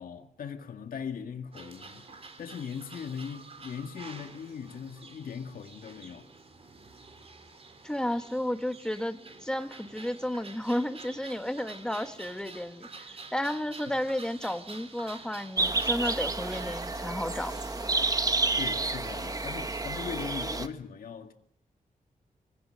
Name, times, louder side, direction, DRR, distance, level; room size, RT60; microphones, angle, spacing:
voice 1, 0.0-2.1 2.4-6.3 13.9-14.0 18.5-21.3, left 7 dB, 80° left, 1.9 m, -39 dB
sound 1, 1.5-20.3, right 3 dB, 40° right, 3.9 m, -49 dB
voice 2, 7.8-17.6, left 1 dB, 5° left, 1.7 m, -32 dB
sound 2, 15.6-20.7, right 3 dB, 25° right, 1.4 m, -30 dB
24.5 x 17.0 x 7.7 m
wide cardioid pair, 100°, 15 cm